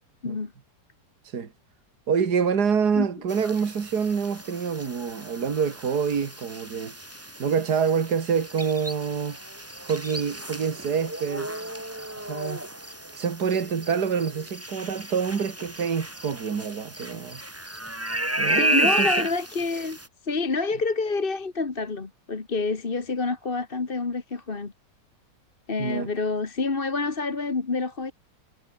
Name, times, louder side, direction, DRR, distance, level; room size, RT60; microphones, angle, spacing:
voice 1, 2.1-6.9 7.4-9.4 9.8-11.5 12.3-12.6 13.1-17.4 18.4-19.1 25.8-26.1, right 6 dB, 65° right, 2.5 m, -26 dB
sound 1, 3.3-20.1, right 1 dB, 10° right, 2.3 m, -32 dB
voice 2, 18.5-20.0 20.2-24.7 25.7-28.1, left 3 dB, 30° left, 1.8 m, -28 dB
omnidirectional pair, 1.9 m